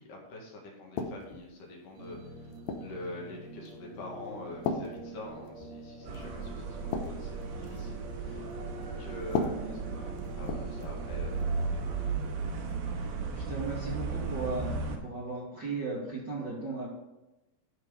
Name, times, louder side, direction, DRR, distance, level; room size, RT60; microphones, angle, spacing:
voice 1, 0.0-9.6 9.9-11.8, left 2 dB, 60° left, -1 dB, 3.0 m, -45 dB
sound 1, 1.0-1.5 2.1-3.0 3.7-3.9 4.6-5.8 6.1-6.3 6.7-8.0 9.2-11.0 11.3-11.6 12.7-12.9, left 5 dB, 75° left, 2.3 m, -36 dB
sound 2, 1.9-12.2, right 2 dB, 55° right, 4.3 m, -46 dB
sound 3, 6.0-15.0, right 4 dB, 70° right, 2.8 m, -35 dB
voice 2, 9.5-10.0 13.0-14.7 15.0-16.9, right 3 dB, 30° right, -8 dB, 2.5 m, -36 dB
13.0 x 4.5 x 5.0 m, 0.99 s
omnidirectional pair, 4.9 m